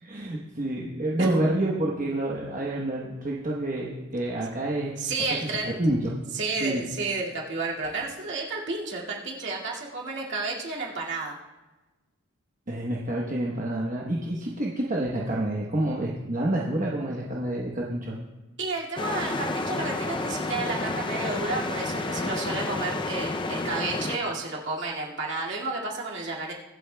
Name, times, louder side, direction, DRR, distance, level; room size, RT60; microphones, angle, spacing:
voice 1, 0.0-5.0 5.4-6.1 6.6-7.0 12.7-18.2, right 1 dB, 40° right, -3 dB, 1.0 m, -28 dB
voice 2, 5.0-5.8 6.3-11.4 18.6-26.5, right 3 dB, 55° right, -3 dB, 2.2 m, -31 dB
sound 1, 19.0-24.2, left 2 dB, 20° left, 0.4 m, -30 dB
23.5 x 8.4 x 2.3 m, 1.2 s
head